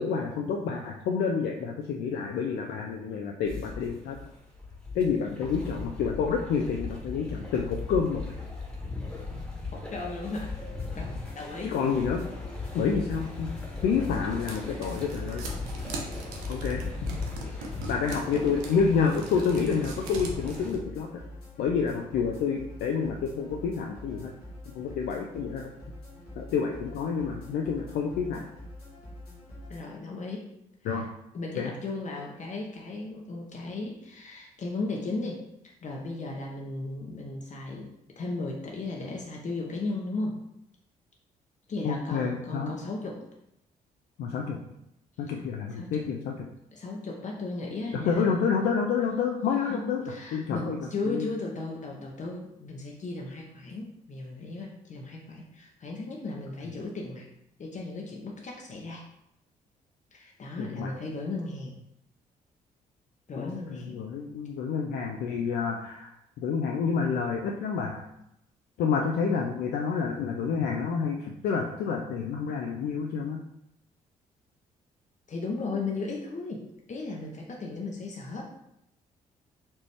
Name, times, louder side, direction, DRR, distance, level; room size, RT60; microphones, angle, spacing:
voice 1, 0.0-4.2 4.9-8.2 11.6-12.2 12.7-13.5 13.8-15.4 16.5-16.8 17.9-21.1 21.6-24.3 24.8-25.7 26.4-28.5 30.8-31.1 31.6-31.7 41.8-42.7 44.2-44.6 45.2-46.3 47.9-50.8 51.1-51.3 60.6-60.9 63.4-68.1 68.8-73.4, left 6 dB, 60° left, 2 dB, 0.5 m, -28 dB
sound 1, 3.4-20.7, left 3 dB, 5° left, 1.4 m, -38 dB
voice 2, 5.1-5.5 9.7-10.5 11.0-11.8 14.6-14.9 15.6-16.1 17.5-17.7 29.7-30.5 30.8-31.1 31.3-35.4 35.8-40.4 41.7-43.2 45.3-45.4 45.7-46.0 46.7-48.5 49.6-57.2 57.6-59.0 60.1-61.8 63.3-64.0 75.3-76.6 76.9-78.4, left 3 dB, 40° left, -1 dB, 0.8 m, -36 dB
sound 2, 10.2-29.8, left 1 dB, 85° left, 1.3 m, -45 dB
sound 3, 13.5-20.8, right 3 dB, 75° right, 0.7 m, -41 dB
4.3 x 3.0 x 3.4 m, 0.81 s
figure-of-eight pair, 45°, 19 cm